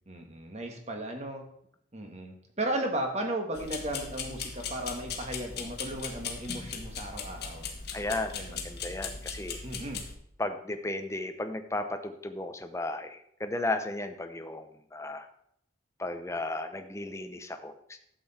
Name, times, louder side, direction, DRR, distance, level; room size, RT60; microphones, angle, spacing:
voice 1, 0.1-1.4 1.9-7.6 8.3-8.6 9.6-10.0, right 1 dB, 35° right, 3 dB, 1.7 m, -35 dB
sound 1, 3.5-10.1, left 5 dB, 55° left, 1.6 m, -39 dB
voice 2, 7.9-8.3 8.6-9.6 10.4-15.3 16.0-18.0, left 2 dB, 15° left, 8 dB, 0.8 m, -35 dB
12.0 x 7.8 x 4.4 m, 0.71 s
head